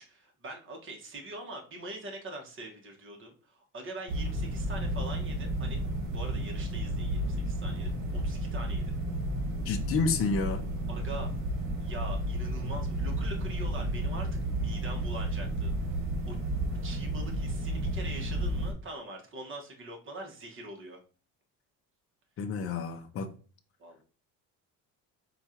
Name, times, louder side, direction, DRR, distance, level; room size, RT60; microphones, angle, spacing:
voice 1, 0.0-5.8 6.1-8.8 10.9-11.3 11.8-16.4 16.8-21.0 23.8-24.0, right 2 dB, 35° right, 1.3 m, -43 dB
sound 1, 4.1-18.7, right 1 dB, 65° right, 1.4 m, -32 dB
voice 2, 9.7-10.7 22.4-23.3, left 5 dB, 40° left, 0.6 m, -30 dB
4.6 x 2.5 x 4.3 m
cardioid pair, 135°, 34 cm